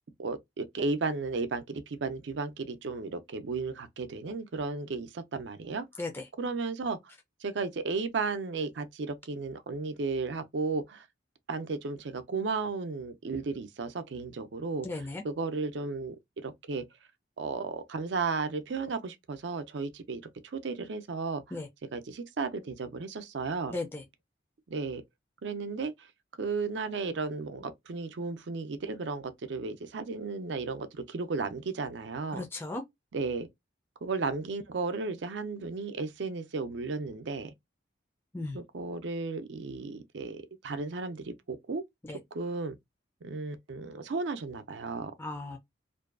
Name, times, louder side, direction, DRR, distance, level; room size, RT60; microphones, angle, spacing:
voice 1, 0.2-5.9 6.4-7.0 7.4-11.1 11.5-16.2 16.4-16.8 17.4-20.2 20.5-21.4 21.9-23.7 24.7-25.0 25.4-25.9 26.4-32.4 33.1-33.5 34.0-37.5 38.5-41.8 42.3-42.7 43.2-45.1, right 4 dB, 70° right, 0.5 m, -34 dB
voice 2, 14.8-15.2 21.5-21.7 23.7-24.0 32.3-32.8 38.3-38.6 42.0-42.2 45.2-45.6, left 2 dB, 10° left, 0.4 m, -36 dB
2.6 x 2.2 x 2.3 m
head